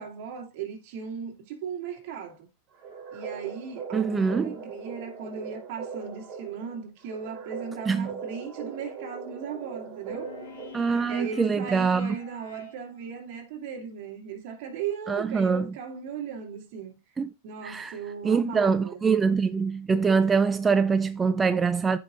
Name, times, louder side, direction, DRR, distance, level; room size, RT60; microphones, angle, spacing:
voice 1, 0.0-2.5 3.1-10.3 11.1-17.0 17.4-19.0, right 7 dB, 60° right, 2.5 m, -37 dB
sound 1, 2.7-11.2, right 5 dB, 40° right, 4.2 m, -40 dB
voice 2, 3.9-4.5 7.9-8.1 10.7-12.2 15.1-15.7 17.2-17.3 17.6-17.9 18.2-22.0, right 5 dB, 15° right, 0.3 m, -24 dB
sound 2, 10.1-13.4, left 8 dB, 90° left, 3.8 m, -47 dB
14.5 x 5.4 x 2.5 m
hypercardioid pair, 125°, 0 cm